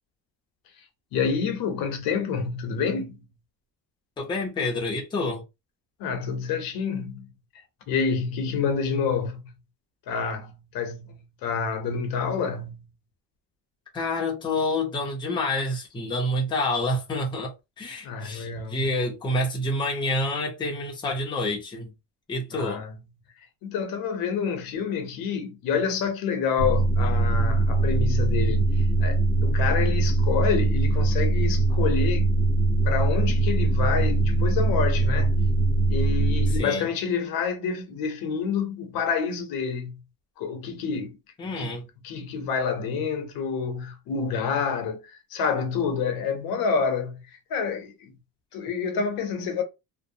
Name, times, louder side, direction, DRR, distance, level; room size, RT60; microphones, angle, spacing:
voice 1, 1.1-3.2 6.0-7.3 7.9-9.5 10.1-12.9 18.0-19.0 22.5-22.9 23.6-32.3 32.8-35.4 35.9-40.0 40.4-41.2 41.4-41.8 42.0-48.1 48.5-49.6, left 6 dB, 70° left, 0.8 m, -28 dB
voice 2, 4.2-5.4 13.9-17.5 17.8-21.9 22.3-22.8 36.5-36.9 41.4-41.8, left 1 dB, 15° left, 0.5 m, -28 dB
sound 1, 26.6-36.6, right 2 dB, 15° right, 0.8 m, -22 dB
2.6 x 2.0 x 2.6 m
cardioid pair, 180°, 36 cm